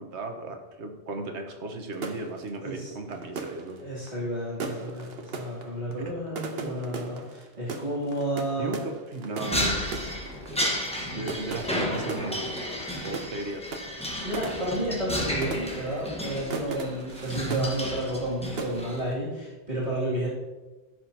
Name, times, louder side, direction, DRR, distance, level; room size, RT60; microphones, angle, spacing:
voice 1, 0.0-3.8 8.6-10.2 11.1-12.6 13.0-13.7 17.3-17.7, right 2 dB, 85° right, 4 dB, 1.4 m, -35 dB
sound 1, 1.9-18.3 18.6-19.1, right 4 dB, 65° right, 1.1 m, -39 dB
voice 2, 3.8-8.7 11.1-11.3 14.2-20.3, right 1 dB, 40° right, -9 dB, 2.6 m, -31 dB
sound 2, 9.4-19.1, equal, 5° left, 1.2 m, -33 dB
14.5 x 6.3 x 2.8 m, 1.2 s
omnidirectional pair, 1.1 m